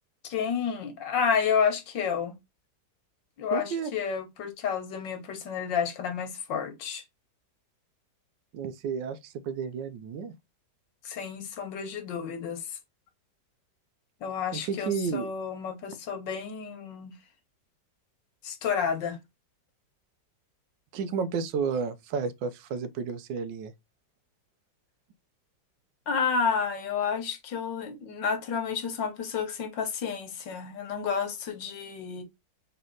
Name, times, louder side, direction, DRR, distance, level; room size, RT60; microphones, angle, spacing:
voice 1, 0.2-2.4 3.4-7.0 11.0-12.8 14.2-17.1 18.4-19.2 26.1-32.2, left 6 dB, 85° left, 1.7 m, -30 dB
voice 2, 3.5-3.9 8.5-10.3 14.5-15.3 20.9-23.7, right 6 dB, 85° right, 1.3 m, -32 dB
4.1 x 3.3 x 3.8 m
omnidirectional pair, 1.9 m